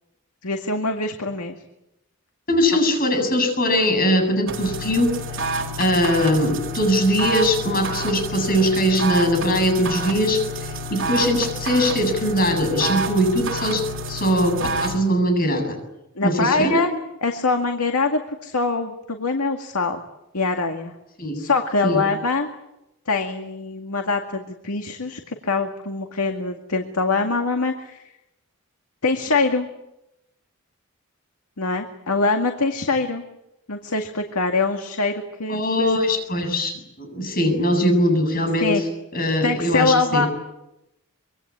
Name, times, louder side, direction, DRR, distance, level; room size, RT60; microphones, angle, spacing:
voice 1, 0.4-1.6 16.2-16.9 17.2-20.0 20.3-21.0 21.3-22.5 23.1-28.1 29.0-29.7 31.6-33.2 33.7-35.6 38.6-38.8 39.4-40.3, left 3 dB, 90° left, 4 dB, 2.1 m, -23 dB
voice 2, 2.5-5.1 5.8-15.7 16.2-16.8 21.2-21.4 21.8-22.0 35.5-38.7 39.1-40.3, equal, 40° left, 5 dB, 7.7 m, -21 dB
sound 1, 4.5-15.0, right 1 dB, 60° right, 3.6 m, -29 dB
25.5 x 24.0 x 8.7 m, 0.90 s
head